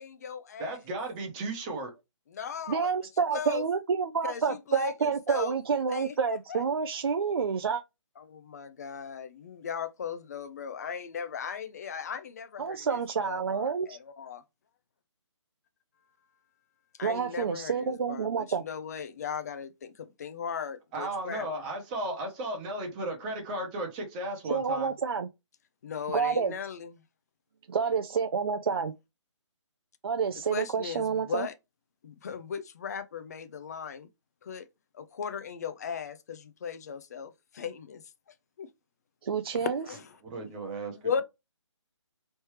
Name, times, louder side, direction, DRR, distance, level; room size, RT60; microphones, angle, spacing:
voice 1, 0.0-0.8 2.3-2.9 3.3-3.6 4.2-5.5 5.9-6.4 8.2-14.4 17.0-21.5 25.8-26.9 30.5-31.5 32.0-34.1 34.4-34.7 34.9-38.0 38.6-38.7 39.9-40.0 40.9-41.2, left 7 dB, 30° left, 0.5 m, -37 dB
voice 2, 0.6-1.9 20.9-24.9 40.2-41.0, right 1 dB, 15° right, 0.9 m, -35 dB
voice 3, 2.7-7.8 12.6-14.0 17.0-18.6 24.5-25.3 26.1-26.5 27.7-28.9 30.0-31.5 39.2-39.8, right 6 dB, 50° right, 0.4 m, -29 dB
4.3 x 3.2 x 3.2 m
hypercardioid pair, 160°, 16 cm